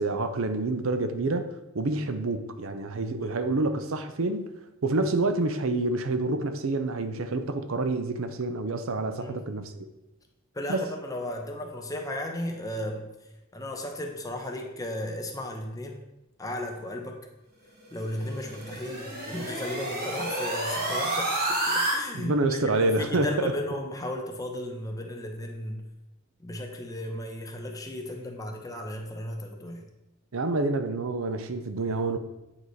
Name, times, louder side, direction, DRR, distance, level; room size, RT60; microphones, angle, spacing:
voice 1, 0.0-4.5 4.8-9.9 10.7-10.9 22.1-23.5 30.3-32.2, right 2 dB, 65° right, 9 dB, 0.6 m, -28 dB
voice 2, 10.5-13.1 13.5-16.0 16.4-17.2 17.9-22.4 22.7-25.8 26.4-29.9, left 1 dB, 15° left, 2 dB, 0.9 m, -35 dB
sound 1, 18.0-21.9, right 2 dB, 45° right, 1.7 m, -30 dB
8.6 x 4.8 x 4.1 m, 0.97 s
head